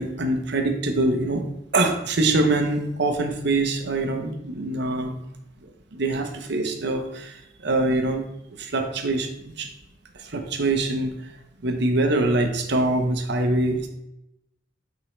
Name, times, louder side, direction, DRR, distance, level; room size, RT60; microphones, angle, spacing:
voice 1, 0.0-1.4 1.7-5.2 5.6-8.2 8.6-9.7 10.2-11.3 11.6-13.9, right 2 dB, 65° right, 5 dB, 0.9 m, -24 dB
8.9 x 3.7 x 3.3 m, 0.87 s
head